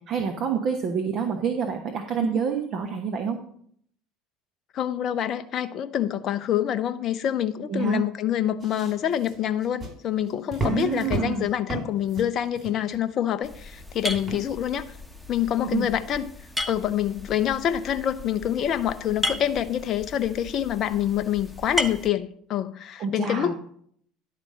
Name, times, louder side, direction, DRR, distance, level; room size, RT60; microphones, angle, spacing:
voice 1, 0.1-3.4 7.7-8.0 10.6-11.5 15.6-15.9 23.0-23.5, right 6 dB, 50° right, 4 dB, 1.1 m, -27 dB
voice 2, 4.7-15.0 15.3-16.3 16.7-23.5, left 10 dB, 50° left, 10 dB, 0.6 m, -26 dB
sound 1, 8.6-13.3 14.1-14.7 15.3-15.4, right 2 dB, 30° right, 3.9 m, -35 dB
sound 2, 13.4-22.1, left 1 dB, ahead, 1.1 m, -35 dB
11.0 x 4.2 x 6.3 m, 0.65 s
hypercardioid pair, 65°, 0 cm